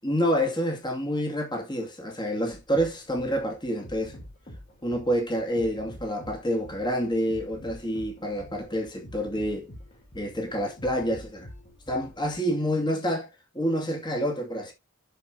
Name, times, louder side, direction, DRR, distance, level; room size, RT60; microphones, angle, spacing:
voice 1, 0.0-4.2 4.8-9.7 10.1-11.5 11.9-13.3 13.5-14.7, equal, 20° left, 2.4 m, -28 dB
sound 1, 2.5-12.4, left 1 dB, 35° left, 3.8 m, -46 dB
10.0 x 6.7 x 2.8 m
head